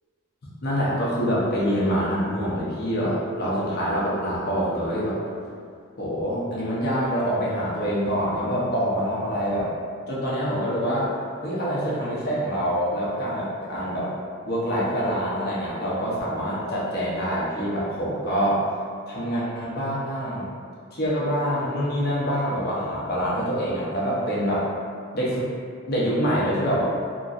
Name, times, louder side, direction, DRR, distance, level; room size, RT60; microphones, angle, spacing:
voice 1, 0.6-5.2 6.0-9.7 10.1-11.1 11.4-14.1 14.5-18.6 19.1-20.5 20.9-24.7 25.1-25.5 25.9-26.8, equal, 45° left, -7 dB, 0.7 m, -25 dB
2.9 x 2.6 x 2.4 m, 2.1 s
head